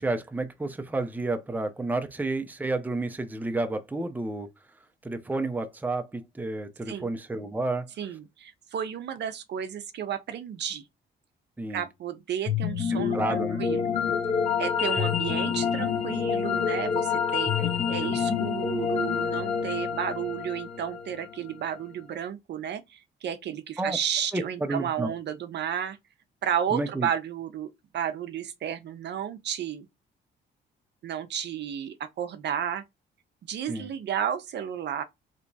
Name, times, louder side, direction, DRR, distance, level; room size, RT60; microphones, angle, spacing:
voice 1, 0.0-4.5 5.0-7.9 11.6-11.8 12.9-13.6 17.6-17.7 18.0-18.2 23.8-24.0 24.3-25.1 26.7-27.1 33.7-33.9, right 2 dB, 10° right, 0.6 m, -31 dB
voice 2, 8.0-10.8 11.7-13.9 14.6-17.5 17.9-26.0 26.4-29.9 31.0-32.8 33.5-35.0, right 9 dB, 60° right, 0.6 m, -32 dB
sound 1, 12.5-21.6, left 7 dB, 30° left, 0.8 m, -27 dB
3.3 x 3.0 x 2.7 m
cardioid pair, 90°, 20 cm